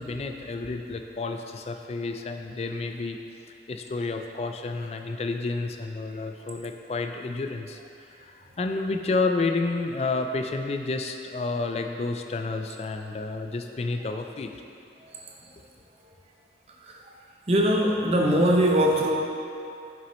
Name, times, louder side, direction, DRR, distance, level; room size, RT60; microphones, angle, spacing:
voice 1, 0.0-3.2 3.7-14.5, left 3 dB, 35° left, 5 dB, 0.3 m, -30 dB
voice 2, 17.5-19.1, equal, 35° right, 0 dB, 0.6 m, -21 dB
6.9 x 6.1 x 3.0 m, 2.5 s
head